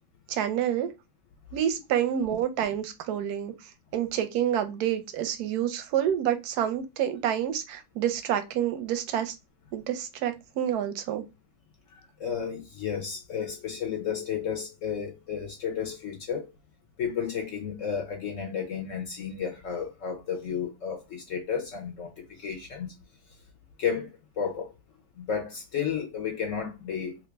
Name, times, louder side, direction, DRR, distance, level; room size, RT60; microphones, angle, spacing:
voice 1, 0.3-0.9 1.5-3.5 3.9-9.3 9.7-11.2, right 10 dB, 70° right, 1.0 m, -28 dB
voice 2, 11.9-16.5 17.0-22.9 23.8-24.7 25.2-27.2, left 7 dB, 65° left, 0.8 m, -32 dB
3.2 x 2.5 x 3.2 m
omnidirectional pair, 2.1 m